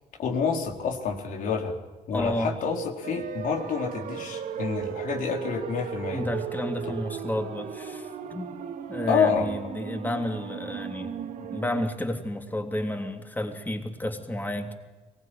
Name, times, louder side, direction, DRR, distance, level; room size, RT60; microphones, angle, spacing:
voice 1, 0.2-1.7 2.1-6.2 9.1-9.5, left 5 dB, 75° left, 1 dB, 4.3 m, -28 dB
voice 2, 2.1-2.5 6.1-8.5 8.9-14.7, left 1 dB, 10° left, 4 dB, 3.3 m, -31 dB
sound 1, 3.0-11.9, right 8 dB, 75° right, 2.3 m, -36 dB
23.5 x 19.5 x 9.4 m, 1.2 s
cardioid pair, 120°, 14 cm